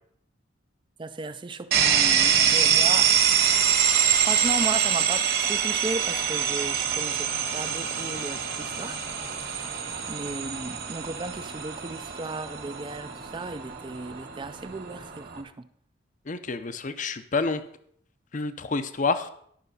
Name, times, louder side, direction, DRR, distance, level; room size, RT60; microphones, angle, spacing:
voice 1, 1.0-3.1 4.3-9.0 10.1-15.7, right 3 dB, 25° right, 0.4 m, -35 dB
sound 1, 1.7-15.4, right 8 dB, 50° right, 1.5 m, -25 dB
voice 2, 16.3-17.6 18.3-19.3, left 4 dB, 40° left, 0.6 m, -28 dB
11.5 x 6.0 x 5.5 m
head